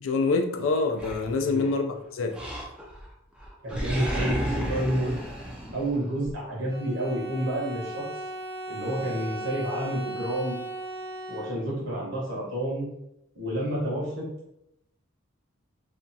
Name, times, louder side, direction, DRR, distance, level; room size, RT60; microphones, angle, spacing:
voice 1, 0.0-2.4, left 3 dB, 85° left, 0.4 m, -26 dB
Animal, 1.0-1.8 2.3-3.1 3.4-6.3, equal, 5° right, 0.3 m, -33 dB
voice 2, 3.6-5.1 5.7-8.0 8.7-10.6 11.3-12.9 13.3-14.2, right 1 dB, 70° right, 1.1 m, -29 dB
Bowed string instrument, 6.7-11.9, right 1 dB, 50° right, 0.8 m, -37 dB
2.8 x 2.3 x 2.6 m
head